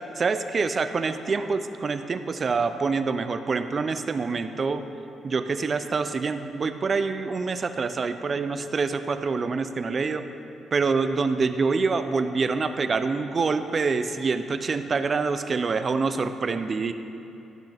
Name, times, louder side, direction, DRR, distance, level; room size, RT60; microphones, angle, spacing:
voice 1, 0.2-4.8 5.2-10.3 10.7-16.9, right 4 dB, 40° right, 10 dB, 0.4 m, -26 dB
12.0 x 5.8 x 3.4 m, 2.8 s
cardioid pair, 90°, 0 cm